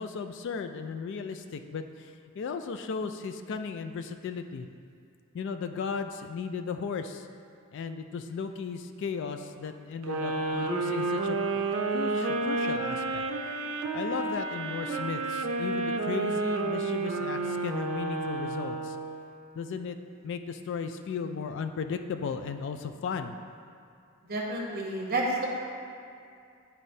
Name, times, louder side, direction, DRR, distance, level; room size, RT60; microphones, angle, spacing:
voice 1, 0.0-4.7 5.3-7.3 7.7-13.2 13.9-19.0 19.5-20.0 20.2-23.4, left 5 dB, 55° left, 7 dB, 0.3 m, -36 dB
sound 1, 10.0-19.3, right 3 dB, 75° right, 0.5 m, -30 dB
voice 2, 24.3-25.5, right 2 dB, 45° right, -2 dB, 1.0 m, -30 dB
10.0 x 4.2 x 2.7 m, 2.4 s
head